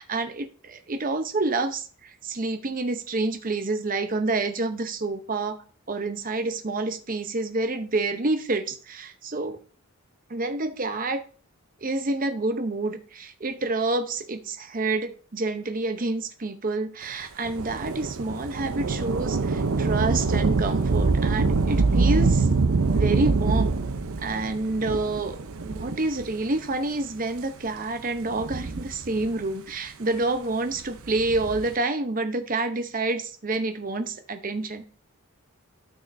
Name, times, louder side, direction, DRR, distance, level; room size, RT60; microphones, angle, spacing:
voice 1, 0.0-9.6 10.3-11.2 11.8-22.5 22.9-23.8 24.2-34.8, right 2 dB, 40° right, 8 dB, 0.8 m, -28 dB
Thunder / Rain, 17.4-26.4 27.2-27.3 28.2-29.5 31.0-31.7, right 3 dB, 80° right, 0.7 m, -25 dB
12.0 x 6.4 x 2.6 m, 0.40 s
head